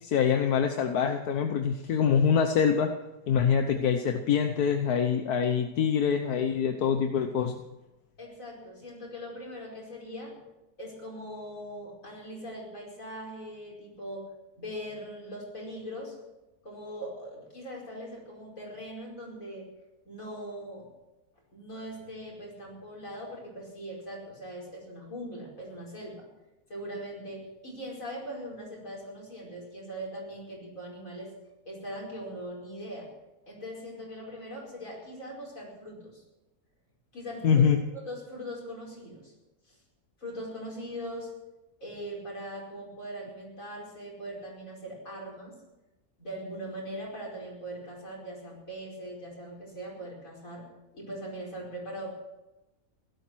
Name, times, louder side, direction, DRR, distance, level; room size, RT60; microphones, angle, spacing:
voice 1, 0.0-2.9 3.3-7.5 37.4-37.8, left 7 dB, 90° left, 5 dB, 1.5 m, -25 dB
voice 2, 8.2-10.4 10.8-14.3 14.6-16.2 16.6-19.7 20.1-20.9 21.5-26.3 26.7-31.3 31.7-33.1 33.5-36.2 37.1-37.7 37.9-39.3 39.7-39.8 40.2-41.3 41.8-45.6 46.2-50.7 50.9-52.1, equal, 60° left, -2 dB, 5.5 m, -40 dB
17.0 x 12.5 x 6.2 m, 0.99 s
omnidirectional pair, 1.6 m